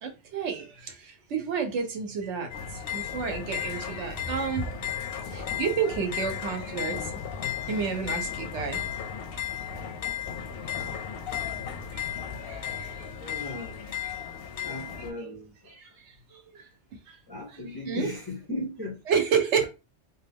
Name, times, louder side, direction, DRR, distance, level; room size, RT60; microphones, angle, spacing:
voice 1, 0.0-4.7 5.3-7.1 7.7-8.8 11.9-12.1 12.5-13.1 14.0-14.1 15.0-15.1 15.7-15.9 16.3-16.6 17.1-17.2 17.8-18.1 19.1-19.7, right 6 dB, 75° right, 1.0 m, -30 dB
sound 1, 2.5-15.1, left 8 dB, 65° left, 0.7 m, -35 dB
voice 2, 13.2-13.9 14.6-15.7 17.3-18.9 19.6-19.7, left 1 dB, 25° left, 0.5 m, -37 dB
2.6 x 2.2 x 3.4 m
omnidirectional pair, 1.2 m